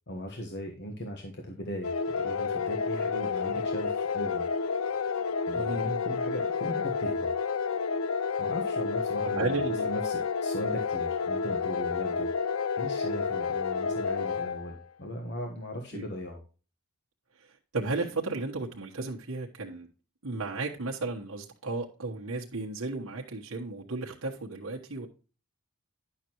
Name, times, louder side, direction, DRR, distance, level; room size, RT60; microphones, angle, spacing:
voice 1, 0.1-4.5 5.5-7.3 8.4-12.3 12.7-16.4, equal, 50° left, 2 dB, 1.3 m, -38 dB
sound 1, 1.8-14.8, left 5 dB, 65° left, 0.5 m, -30 dB
voice 2, 9.3-9.9 15.9-16.1 17.4-19.9 20.2-25.1, right 3 dB, 70° right, -1 dB, 1.2 m, -34 dB
10.5 x 6.7 x 3.0 m, 0.35 s
head